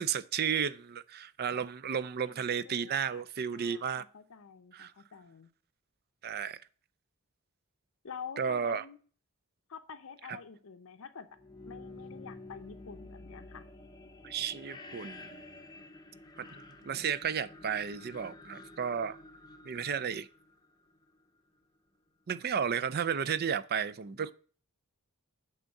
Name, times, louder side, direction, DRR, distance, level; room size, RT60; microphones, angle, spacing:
voice 1, 0.0-4.0 4.7-4.9 6.2-6.6 8.4-8.8 10.3-10.4 14.2-15.4 16.4-16.5 16.8-19.2 19.6-20.3 22.3-24.3, right 7 dB, 45° right, 0.4 m, -33 dB
voice 2, 2.2-3.2 3.5-5.5 8.0-9.0 9.7-11.3 11.6-13.6, left 6 dB, 65° left, 0.6 m, -48 dB
sound 1, 11.3-21.2, left 2 dB, 20° left, 0.7 m, -50 dB
7.9 x 3.7 x 6.4 m
head